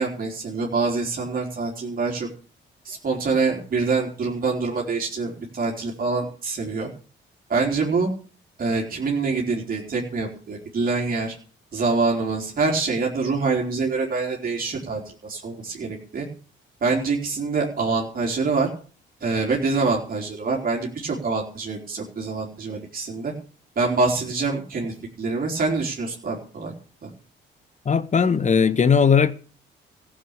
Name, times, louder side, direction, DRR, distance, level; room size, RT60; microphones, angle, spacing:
voice 1, 0.0-2.3 2.9-6.9 7.5-8.1 8.6-11.3 11.7-16.3 16.8-18.7 19.2-23.3 23.8-26.7 27.0-27.1, right 4 dB, 45° right, 3.9 m, -25 dB
voice 2, 27.8-29.3, left 6 dB, 35° left, 1.3 m, -18 dB
15.0 x 7.8 x 8.2 m
cardioid pair, 90°, 20 cm